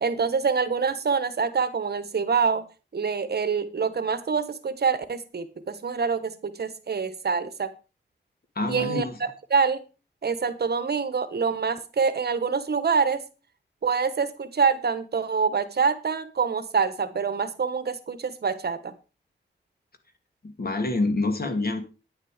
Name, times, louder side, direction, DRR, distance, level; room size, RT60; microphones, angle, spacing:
voice 1, 0.0-2.6 2.9-7.7 8.7-9.8 10.2-13.2 13.8-18.9, right 5 dB, 60° right, 12 dB, 1.2 m, -26 dB
voice 2, 8.6-9.1 20.6-21.8, left 2 dB, 55° left, 7 dB, 2.3 m, -26 dB
10.0 x 9.8 x 5.0 m, 0.32 s
wide cardioid pair, 135°, 19 cm